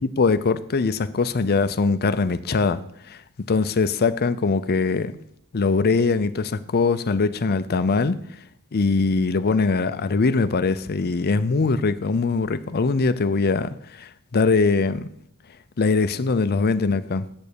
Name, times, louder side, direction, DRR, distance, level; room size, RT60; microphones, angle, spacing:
voice 1, 0.0-2.8 3.1-3.2 3.5-5.1 5.5-8.2 8.7-15.1 15.8-17.3, left 4 dB, 45° left, 0.6 m, -22 dB
8.7 x 8.0 x 6.9 m
head